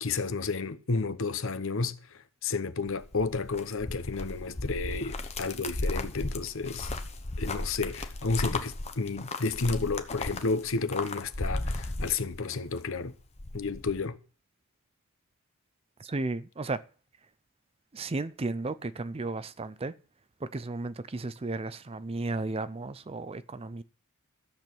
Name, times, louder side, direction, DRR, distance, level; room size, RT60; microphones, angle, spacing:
voice 1, 0.0-6.9 7.4-13.1 13.5-14.2, left 4 dB, 60° left, 0.8 m, -31 dB
sound 1, 2.9-12.8 13.1-14.0, left 2 dB, 30° left, 1.0 m, -35 dB
voice 2, 16.0-16.8 17.9-19.9 20.4-23.8, right 3 dB, 25° right, 0.5 m, -34 dB
13.5 x 7.2 x 6.0 m
head